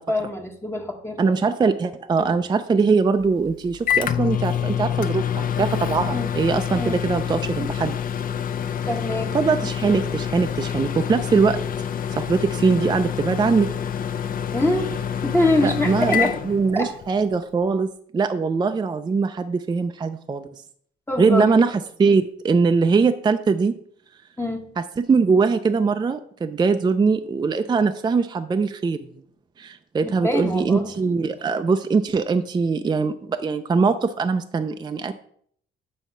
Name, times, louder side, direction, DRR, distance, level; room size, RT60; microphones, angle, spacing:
voice 1, 0.1-1.3 2.2-2.3 6.1-6.3 6.7-7.0 8.9-9.4 14.5-14.9 15.2-16.4 16.7-17.0 21.1-21.6 24.4-24.7 30.0-30.9, left 1 dB, 10° left, 2 dB, 0.9 m, -24 dB
voice 2, 1.2-8.0 9.3-11.6 12.2-13.7 15.6-20.5 21.2-23.7 24.8-29.0 29.6-35.1, right 4 dB, 20° right, 8 dB, 0.4 m, -21 dB
Microwave oven, 3.2-17.2, left 8 dB, 45° left, 0.5 m, -27 dB
7.4 x 3.5 x 5.5 m, 0.63 s
cardioid pair, 90°, 20 cm